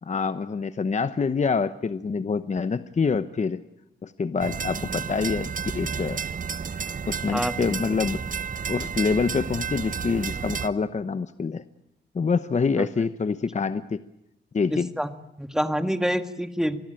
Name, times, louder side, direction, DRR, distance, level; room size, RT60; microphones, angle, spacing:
voice 1, 0.0-3.6 4.0-6.2 7.1-8.2 8.7-11.6 12.1-14.0 14.5-14.9, left 5 dB, 40° left, 12 dB, 0.9 m, -26 dB
sound 1, 4.4-10.7, right 6 dB, 45° right, 1.0 m, -31 dB
voice 2, 14.7-15.1 15.4-16.8, equal, 5° right, 9 dB, 1.8 m, -26 dB
26.5 x 21.0 x 9.0 m, 0.81 s
cardioid pair, 95°, 19 cm